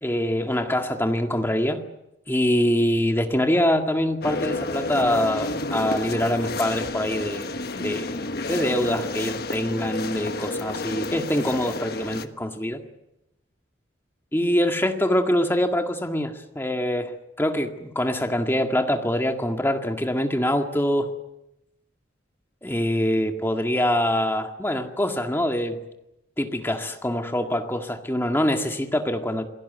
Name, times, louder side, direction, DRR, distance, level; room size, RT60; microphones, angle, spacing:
voice 1, 0.0-1.8 2.3-7.5 7.8-8.2 8.5-12.8 14.3-21.1 22.6-25.8 26.4-29.5, left 1 dB, 10° left, 4 dB, 2.0 m, -24 dB
sound 1, 4.2-12.3, left 2 dB, 55° left, 1.3 m, -30 dB
27.5 x 18.0 x 9.4 m, 0.90 s
head